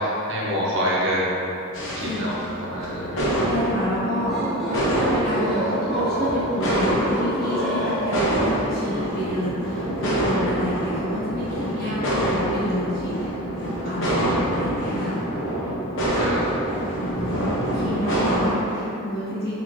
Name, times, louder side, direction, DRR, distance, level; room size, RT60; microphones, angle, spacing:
voice 1, 0.0-1.5 2.0-3.3 11.8-12.0 14.0-14.3 16.0-16.4, equal, 60° right, -6 dB, 0.8 m, -27 dB
sound 1, 1.7-18.4, right 1 dB, 60° left, 0.7 m, -26 dB
voice 2, 3.3-14.2 14.5-15.2 16.8-19.5, equal, 45° left, -12 dB, 1.4 m, -29 dB
sound 2, 4.1-8.6, equal, ahead, 0.7 m, -28 dB
4.2 x 2.8 x 2.9 m, 2.9 s
head